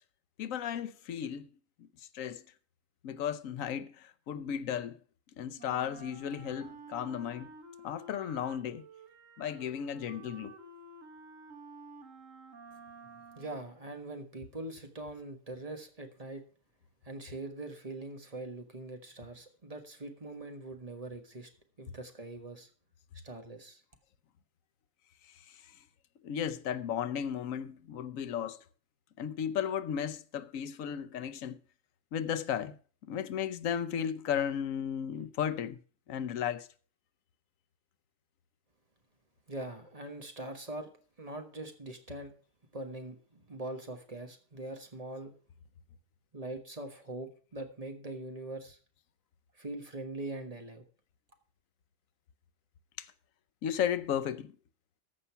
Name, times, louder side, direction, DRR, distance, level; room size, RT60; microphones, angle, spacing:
voice 1, 0.4-1.5 2.1-2.4 3.0-5.0 5.4-7.5 7.8-8.8 9.4-10.5 25.5-25.6 26.2-28.6 29.2-31.6 32.1-32.8 33.1-35.8 36.1-36.7 53.0-53.1 53.6-54.5, left 9 dB, 85° left, 1.1 m, -34 dB
Wind instrument woodwind instrument, 5.6-13.7, right 3 dB, 75° right, 1.8 m, -51 dB
voice 2, 13.3-16.4 17.0-21.5 21.8-22.7 23.2-23.8 39.5-40.9 41.2-42.3 42.7-45.3 46.3-48.8 49.5-50.8, right 2 dB, 30° right, 1.4 m, -42 dB
14.0 x 5.6 x 5.7 m
omnidirectional pair, 1.3 m